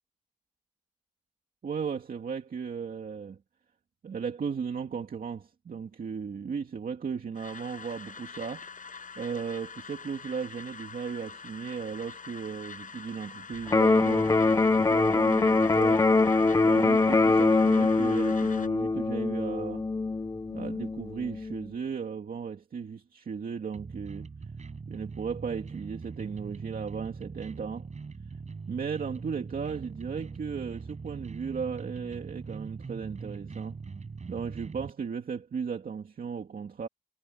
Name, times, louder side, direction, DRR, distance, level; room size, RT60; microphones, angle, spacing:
voice 1, 1.6-3.4 4.0-8.7 9.2-14.4 14.8-16.0 16.6-19.9 20.5-24.3 24.9-27.9 28.7-33.8 34.3-36.9, right 6 dB, 90° right, 2.4 m, -36 dB
sound 1, 7.3-18.7, left 5 dB, 70° left, 5.9 m, -45 dB
Electric guitar, 13.7-21.7, left 3 dB, 25° left, 0.5 m, -24 dB
sound 2, 23.7-34.9, right 4 dB, 55° right, 7.6 m, -42 dB
wide cardioid pair, 125°, 14 cm